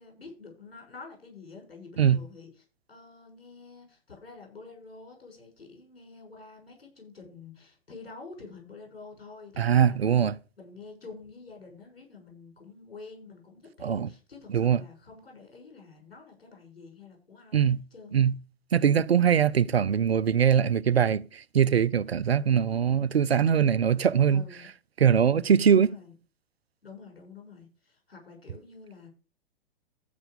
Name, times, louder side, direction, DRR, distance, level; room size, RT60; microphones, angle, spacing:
voice 1, 0.0-10.2 10.6-18.2 24.3-24.7 25.7-26.1 26.8-29.1, left 4 dB, 70° left, 6.7 m, -48 dB
voice 2, 9.6-10.4 13.8-14.1 14.5-14.8 17.5-17.8 18.1-18.4 18.7-24.4 25.0-25.9, right 8 dB, 80° right, 0.5 m, -22 dB
14.5 x 5.7 x 5.2 m
figure-of-eight pair, 105°, 31 cm